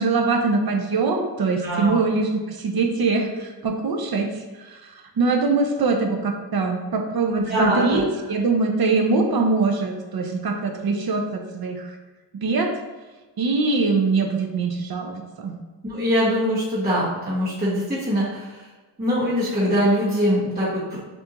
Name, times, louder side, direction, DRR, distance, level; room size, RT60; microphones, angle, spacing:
voice 1, 0.0-12.0 12.4-12.8 13.4-15.5, right 3 dB, 55° right, 4 dB, 0.6 m, -23 dB
voice 2, 1.6-2.0 7.3-8.0 15.9-18.7 19.0-21.0, equal, 20° right, -9 dB, 1.1 m, -23 dB
5.6 x 2.6 x 2.9 m, 1.2 s
wide cardioid pair, 165°, 44 cm